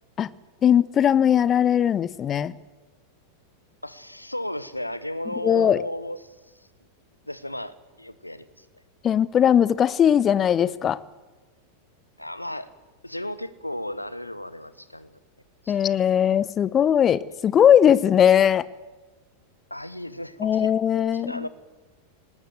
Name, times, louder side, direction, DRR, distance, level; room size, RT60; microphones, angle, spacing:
voice 1, 0.6-2.5 5.4-5.8 9.0-11.0 15.7-18.7 20.4-21.4, left 9 dB, 25° left, 20 dB, 0.9 m, -19 dB
voice 2, 3.8-6.7 7.3-8.7 12.2-12.7 13.0-15.2 15.6-15.8 19.7-20.7 21.1-21.5, left 1 dB, 85° left, 15 dB, 1.3 m, -34 dB
25.0 x 19.5 x 7.9 m, 1.2 s
figure-of-eight pair, 90°, 0 cm